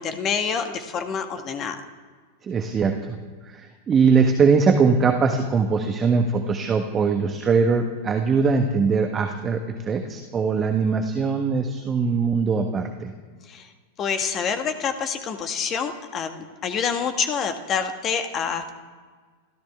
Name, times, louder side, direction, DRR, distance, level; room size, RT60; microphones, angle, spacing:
voice 1, 0.0-1.8 13.4-13.7 14.0-18.7, left 6 dB, 30° left, 7 dB, 1.7 m, -27 dB
voice 2, 2.4-3.1 3.5-13.1, right 5 dB, 25° right, 5 dB, 1.3 m, -21 dB
29.5 x 14.0 x 3.5 m, 1.5 s
figure-of-eight pair, 90°, 0 cm